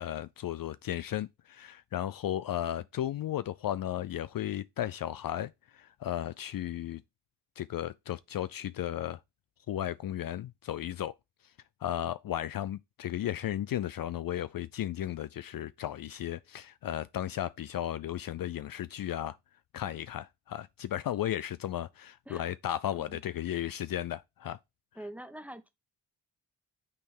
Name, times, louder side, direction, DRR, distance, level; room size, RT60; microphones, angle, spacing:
voice 1, 0.0-7.0 7.6-9.2 9.7-11.1 11.8-19.4 19.7-24.6, left 12 dB, 60° left, 0.5 m, -35 dB
voice 2, 24.9-25.7, right 1 dB, 5° right, 1.3 m, -44 dB
8.6 x 3.7 x 4.3 m
cardioid pair, 65°, 40 cm